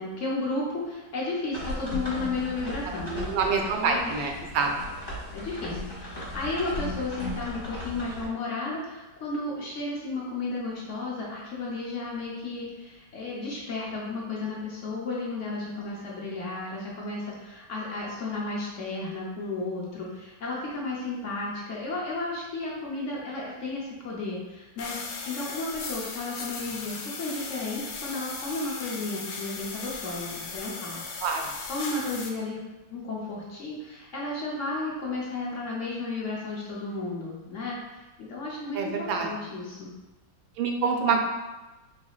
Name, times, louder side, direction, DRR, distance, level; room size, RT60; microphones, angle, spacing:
voice 1, 0.0-3.3 3.6-4.3 5.3-31.0 31.4-32.6 32.9-39.9, left 2 dB, 60° left, -4 dB, 0.8 m, -33 dB
sound 1, 1.5-8.3, left 2 dB, 30° left, 1.5 m, -36 dB
voice 2, 3.0-4.7 31.2-31.4 38.7-39.3 40.6-41.3, right 5 dB, 85° right, 3 dB, 1.4 m, -26 dB
sound 2, 24.8-32.3, left 4 dB, 80° left, 1.3 m, -37 dB
4.8 x 3.3 x 2.4 m, 1.1 s
omnidirectional pair, 2.1 m